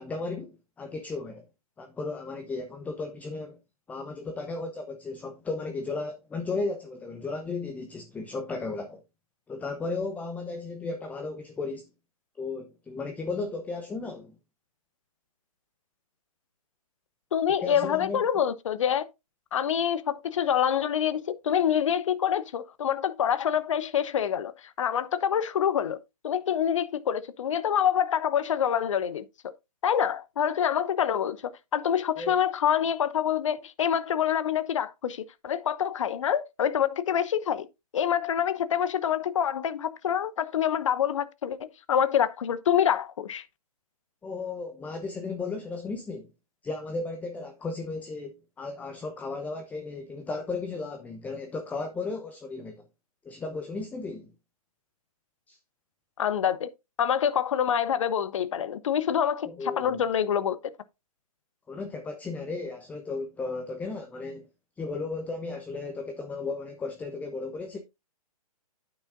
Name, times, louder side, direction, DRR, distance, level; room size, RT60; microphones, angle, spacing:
voice 1, 0.0-1.4 1.8-3.6 3.9-9.0 9.5-11.8 12.4-14.3 17.6-18.2 32.2-32.4 44.2-46.3 46.6-52.8 53.2-54.3 55.5-55.6 59.4-60.0 61.7-64.5 64.8-67.8, left 3 dB, 10° left, 0.8 m, -35 dB
voice 2, 17.3-19.1 19.5-24.5 24.8-26.0 26.2-29.2 29.8-37.7 37.9-43.4 56.2-56.7 57.0-60.6, left 9 dB, 55° left, 0.9 m, -26 dB
9.8 x 9.0 x 2.5 m
figure-of-eight pair, 125°, 19 cm